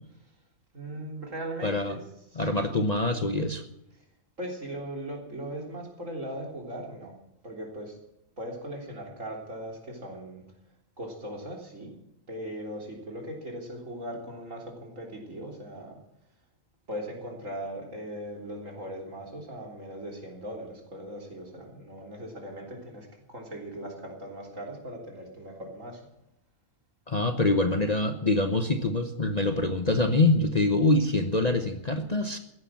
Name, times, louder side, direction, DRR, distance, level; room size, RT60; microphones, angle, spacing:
voice 1, 0.7-2.8 3.9-4.0 4.4-7.1 7.4-8.0 8.4-10.4 11.0-11.9 12.3-16.0 16.9-26.1, right 1 dB, 65° right, 1 dB, 4.0 m, -39 dB
voice 2, 1.6-1.9 2.4-3.6 27.1-32.4, left 2 dB, 30° left, 7 dB, 1.0 m, -25 dB
15.0 x 11.0 x 7.5 m, 0.83 s
omnidirectional pair, 1.5 m